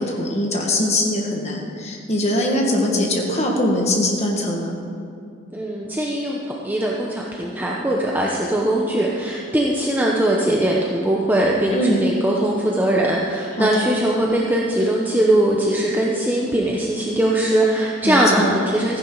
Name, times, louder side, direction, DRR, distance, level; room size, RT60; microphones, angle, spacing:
voice 1, 0.0-4.8 11.7-12.1 13.6-13.9 18.0-18.6, left 1 dB, 40° left, -1 dB, 1.7 m, -22 dB
voice 2, 5.5-6.4 6.6-19.0, right 1 dB, 10° right, -3 dB, 0.8 m, -20 dB
15.0 x 10.5 x 3.9 m, 2.5 s
head